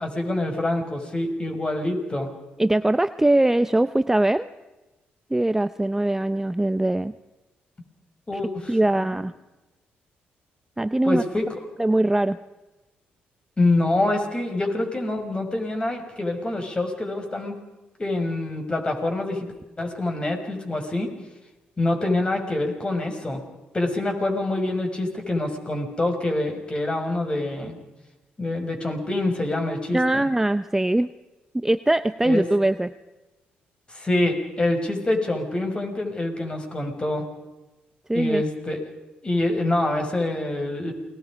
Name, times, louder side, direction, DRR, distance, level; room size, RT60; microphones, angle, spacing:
voice 1, 0.0-2.3 8.3-9.2 11.0-11.5 13.6-17.6 18.0-19.5 19.8-21.1 21.8-23.4 23.7-27.8 28.4-30.3 32.2-32.4 33.9-37.2 38.1-38.8 39.2-40.9, left 2 dB, 25° left, 3 dB, 6.1 m, -26 dB
voice 2, 2.6-4.5 5.3-7.1 8.3-8.4 8.7-9.3 10.8-11.2 11.8-12.4 29.9-31.1 31.5-32.9 38.1-38.4, right 1 dB, 10° right, 12 dB, 0.7 m, -21 dB
29.0 x 21.0 x 5.2 m, 1.1 s
cardioid pair, 75°, 4 cm